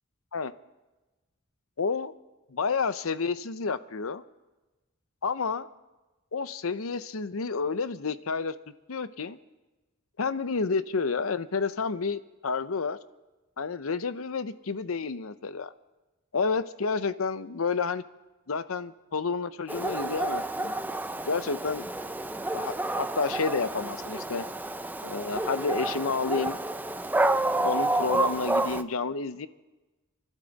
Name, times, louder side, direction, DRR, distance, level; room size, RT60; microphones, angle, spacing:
voice 1, 1.8-2.1 2.5-4.2 5.2-5.7 6.3-8.5 8.9-9.4 10.2-13.0 13.6-15.7 16.3-18.0 18.5-20.7 21.3-21.9 22.5-24.4 25.0-26.6 27.1-29.5, left 4 dB, 85° left, 13 dB, 0.7 m, -30 dB
Dog, 19.7-28.8, right 2 dB, 10° right, 0.4 m, -29 dB
28.0 x 12.0 x 4.1 m, 1.1 s
head